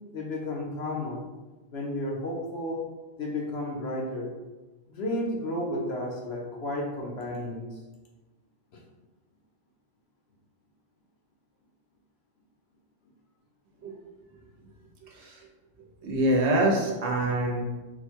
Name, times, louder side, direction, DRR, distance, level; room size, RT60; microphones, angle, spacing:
voice 1, 0.1-1.3 1.7-2.8 3.2-4.3 4.9-7.7, left 1 dB, 60° left, -1 dB, 1.1 m, -32 dB
voice 2, 15.0-15.5 16.0-17.6, right 1 dB, 65° right, -1 dB, 1.1 m, -25 dB
4.1 x 2.2 x 4.4 m, 1.2 s
omnidirectional pair, 1.3 m